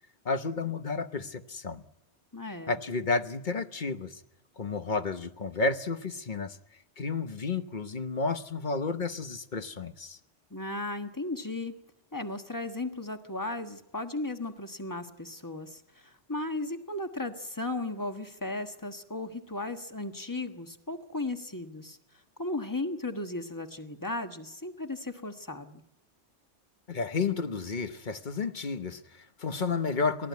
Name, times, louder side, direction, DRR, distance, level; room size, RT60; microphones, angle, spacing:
voice 1, 0.2-1.8 2.7-4.2 4.6-6.6 7.0-10.2 26.9-30.3, left 4 dB, 45° left, 10 dB, 1.1 m, -31 dB
voice 2, 2.3-2.8 10.5-11.7 12.1-22.0 22.4-25.8, left 2 dB, 15° left, 6 dB, 1.4 m, -36 dB
30.0 x 14.0 x 9.4 m, 0.93 s
omnidirectional pair, 1.2 m